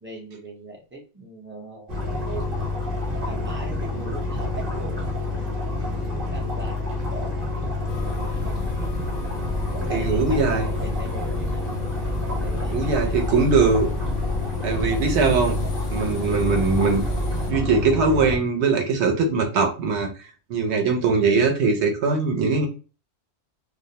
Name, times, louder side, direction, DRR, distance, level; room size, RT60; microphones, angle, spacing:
voice 1, 0.0-2.5 3.2-5.5 5.8-7.3 8.0-8.8 9.8-11.7 12.4-13.5, right 2 dB, 15° right, -1 dB, 0.4 m, -39 dB
sound 1, 1.9-18.4, left 2 dB, 35° right, 1.0 m, -28 dB
sound 2, 7.9-17.5, left 1 dB, 60° left, 0.5 m, -32 dB
voice 2, 9.9-10.7 12.7-13.9 14.6-15.6 15.9-17.0 17.5-22.7, right 4 dB, 65° right, 4 dB, 0.9 m, -21 dB
2.4 x 2.1 x 2.7 m, 0.34 s
omnidirectional pair, 1.3 m